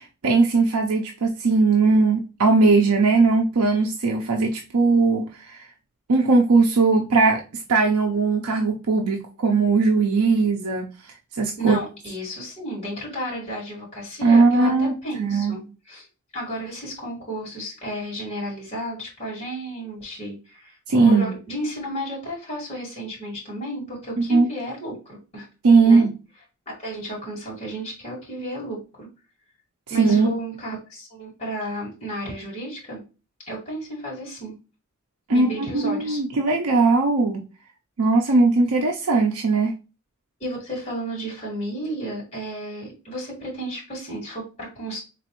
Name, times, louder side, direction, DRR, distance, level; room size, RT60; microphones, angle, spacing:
voice 1, 0.0-5.6 6.1-7.4 7.7-10.9 11.4-11.8 14.2-15.5 20.9-21.3 24.3-24.5 25.6-26.1 30.0-30.3 35.3-37.4 38.0-39.7, right 3 dB, 85° right, 2 dB, 0.6 m, -19 dB
voice 2, 11.6-15.6 15.9-16.1 16.3-25.5 25.8-26.1 26.7-29.1 29.9-33.0 33.5-34.6 35.3-36.2 40.4-45.0, right 1 dB, 30° left, -4 dB, 2.0 m, -33 dB
4.1 x 3.0 x 2.9 m, 0.31 s
head